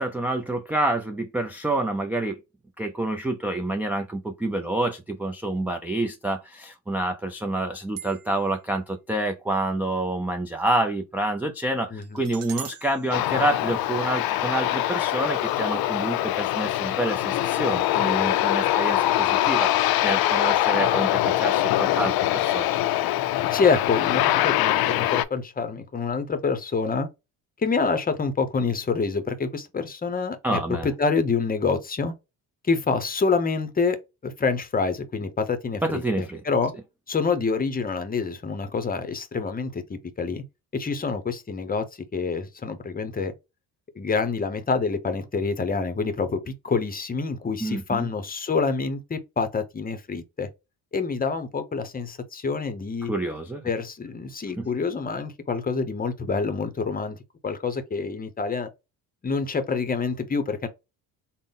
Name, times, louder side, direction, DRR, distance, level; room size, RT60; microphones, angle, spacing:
voice 1, 0.0-2.4 2.8-22.7 30.4-30.9 35.8-36.4 47.6-48.1 53.1-53.6 54.6-54.7, right 2 dB, 5° right, 0.3 m, -28 dB
sound 1, 8.0-8.6 12.0-14.3, right 10 dB, 60° right, 0.8 m, -43 dB
voice 2, 11.9-12.2 23.5-27.1 27.6-32.1 32.6-34.0 34.2-36.7 37.1-40.4 40.7-43.3 44.0-50.5 50.9-53.1 53.6-58.7 59.2-60.7, left 4 dB, 25° left, 0.7 m, -27 dB
Aircraft, 13.1-25.2, left 14 dB, 70° left, 0.5 m, -23 dB
3.9 x 2.1 x 3.5 m
cardioid pair, 110°, 38 cm